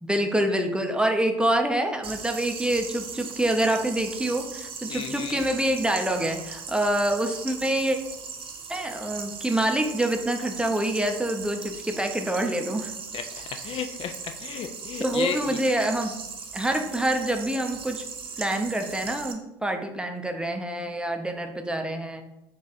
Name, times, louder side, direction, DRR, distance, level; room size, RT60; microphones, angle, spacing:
voice 1, 0.0-8.0 8.7-12.9 15.0-16.1 16.5-18.0 18.4-22.2, right 1 dB, 5° right, 4 dB, 0.5 m, -26 dB
sound 1, 2.0-19.3, right 5 dB, 50° right, 0.8 m, -39 dB
voice 2, 4.9-5.5 13.1-15.6, left 8 dB, 50° left, 7 dB, 0.4 m, -34 dB
3.9 x 2.4 x 4.2 m, 0.91 s
hypercardioid pair, 60°, 12 cm